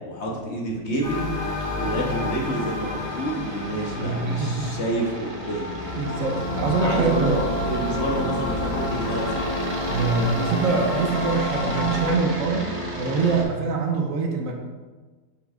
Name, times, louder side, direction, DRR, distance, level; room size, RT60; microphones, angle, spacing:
voice 1, 0.1-1.3 1.7-5.8 6.4-7.3 7.6-9.5, right 1 dB, 50° left, -1 dB, 1.2 m, -29 dB
sound 1, 1.0-12.2, left 1 dB, 25° left, 0.4 m, -30 dB
sound 2, 1.1-13.4, equal, 30° right, 0.6 m, -33 dB
voice 2, 4.0-4.7 6.0-7.4 9.9-14.5, right 4 dB, 65° right, 2 dB, 1.1 m, -24 dB
6.5 x 6.3 x 2.4 m, 1.3 s
omnidirectional pair, 1.6 m